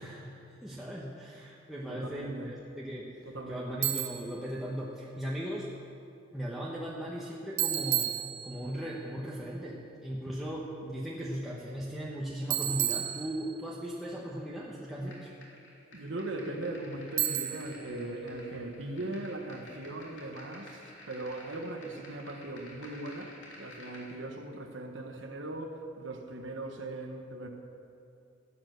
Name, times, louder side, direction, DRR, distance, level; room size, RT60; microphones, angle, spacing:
voice 1, 0.0-5.7 6.3-8.1 8.4-15.2, equal, ahead, -6 dB, 1.1 m, -38 dB
voice 2, 1.9-2.5 3.3-3.8 15.9-27.5, right 2 dB, 65° right, 3 dB, 1.2 m, -39 dB
Bicycle, 3.8-4.3 7.6-8.8 12.5-13.8 17.2-17.8, right 13 dB, 90° right, 1.3 m, -31 dB
sound 1, 15.1-24.1, left 1 dB, 65° left, 3.0 m, -52 dB
16.0 x 8.8 x 6.8 m, 2.7 s
head